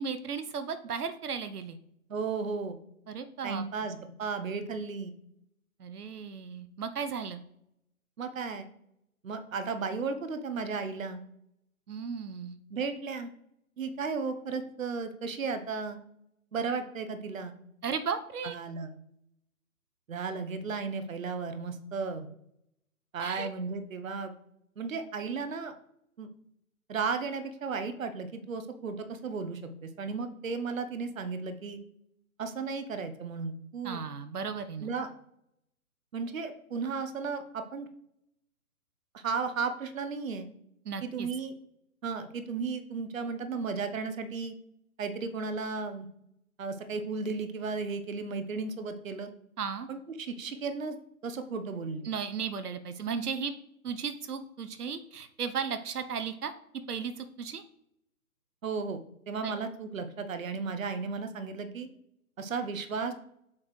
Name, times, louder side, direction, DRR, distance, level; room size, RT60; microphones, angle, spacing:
voice 1, 0.0-1.8 3.1-3.6 5.8-7.4 11.9-12.6 17.8-18.6 23.2-23.5 33.8-34.9 40.8-41.3 49.6-49.9 52.0-53.5 53.8-56.5 56.9-57.6 59.4-59.5, right 6 dB, 90° right, 10 dB, 0.9 m, -35 dB
voice 2, 2.1-2.8 3.4-5.1 8.2-8.7 9.2-11.2 12.7-13.3 13.8-16.0 16.5-17.5 18.4-18.9 20.1-22.3 23.1-24.3 24.8-25.7 26.2-26.3 26.9-31.8 32.4-34.0 34.8-35.1 36.1-37.9 39.1-40.5 41.0-41.5 42.0-44.5 45.0-46.1 46.6-49.3 49.9-51.0 51.2-52.0 58.6-61.9 62.4-63.1, right 4 dB, 60° right, 8 dB, 1.0 m, -34 dB
6.5 x 5.7 x 3.1 m, 0.77 s
hypercardioid pair, 170°, 44 cm